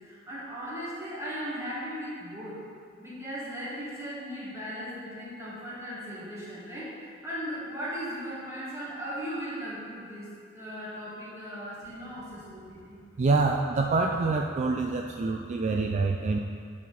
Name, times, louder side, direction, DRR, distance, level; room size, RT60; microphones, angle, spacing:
voice 1, 0.0-2.7 3.0-13.0, equal, 15° right, -8 dB, 1.7 m, -37 dB
voice 2, 13.2-16.4, right 3 dB, 35° right, 2 dB, 0.3 m, -26 dB
8.2 x 4.4 x 4.1 m, 2.2 s
head